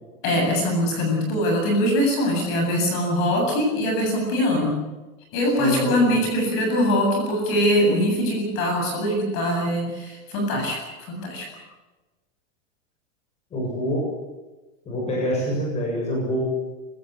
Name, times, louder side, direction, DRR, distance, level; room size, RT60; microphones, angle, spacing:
voice 1, 0.2-4.8 5.3-11.5, equal, 30° left, 2 dB, 7.9 m, -22 dB
voice 2, 5.6-6.2 13.5-14.0 14.9-16.4, equal, 15° left, -2 dB, 7.4 m, -26 dB
25.5 x 17.0 x 8.2 m, 1.2 s
supercardioid pair, 175°, 39 cm